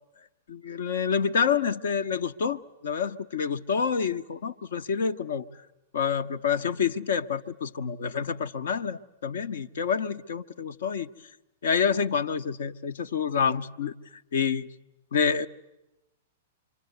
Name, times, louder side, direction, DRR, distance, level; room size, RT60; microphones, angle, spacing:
voice 1, 0.5-5.5 5.9-11.1 11.6-14.7 15.1-15.5, left 6 dB, 60° left, 1.0 m, -28 dB
27.0 x 24.5 x 8.0 m
figure-of-eight pair, 105°, 0 cm